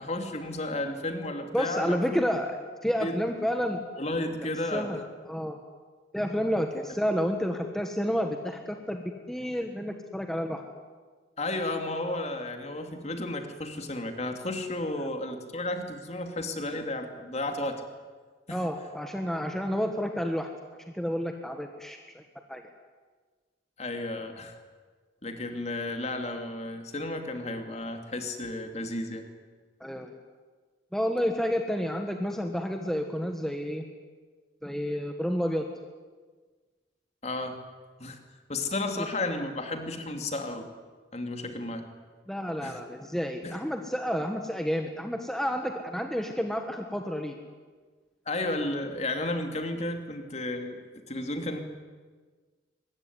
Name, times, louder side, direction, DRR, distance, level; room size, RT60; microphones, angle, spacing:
voice 1, 0.0-2.2 3.0-3.2 4.0-5.0 11.4-17.8 18.5-18.6 23.8-24.5 25.2-29.2 37.2-37.6 38.0-38.2 38.5-40.7 41.1-41.8 42.6-42.8 43.4-43.6 48.3-50.8 51.1-51.6, left 2 dB, 35° left, 5 dB, 2.9 m, -33 dB
voice 2, 1.5-3.8 4.7-5.6 6.1-10.6 15.0-15.1 18.5-20.5 20.9-22.2 22.5-22.6 29.8-30.1 30.9-33.8 34.6-35.7 42.3-47.3, equal, ahead, 4 dB, 1.5 m, -30 dB
24.0 x 21.5 x 9.7 m, 1.4 s
head